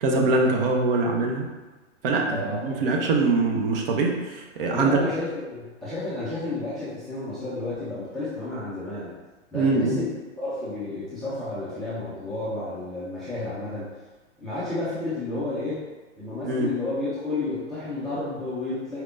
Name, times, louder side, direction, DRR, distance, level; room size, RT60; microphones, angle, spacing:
voice 1, 0.0-1.5 2.0-5.0 9.5-10.0 16.5-16.7, right 3 dB, 50° right, 1 dB, 0.8 m, -23 dB
voice 2, 2.3-2.7 4.7-9.1 9.5-10.1 10.4-13.9 14.4-15.8 16.2-19.0, left 2 dB, ahead, -12 dB, 0.4 m, -31 dB
4.4 x 3.3 x 2.5 m, 1.2 s
hypercardioid pair, 130°, 36 cm